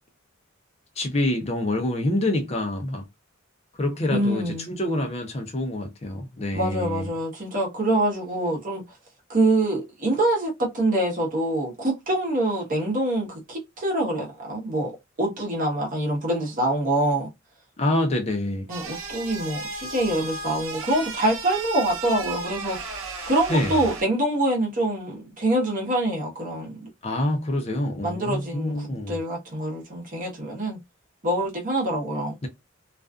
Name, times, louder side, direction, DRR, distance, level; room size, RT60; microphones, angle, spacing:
voice 1, 1.0-3.0 3.8-7.1 17.8-18.7 23.5-23.8 27.0-29.2, left 1 dB, 30° left, 0.5 m, -26 dB
voice 2, 4.1-4.7 6.5-8.8 9.3-14.9 15.2-17.3 18.7-23.0 23.3-26.9 28.0-30.8 31.2-32.3, right 1 dB, 40° right, 0.9 m, -25 dB
sound 1, 18.7-24.0, right 3 dB, 80° right, 0.7 m, -35 dB
2.4 x 2.3 x 2.3 m
head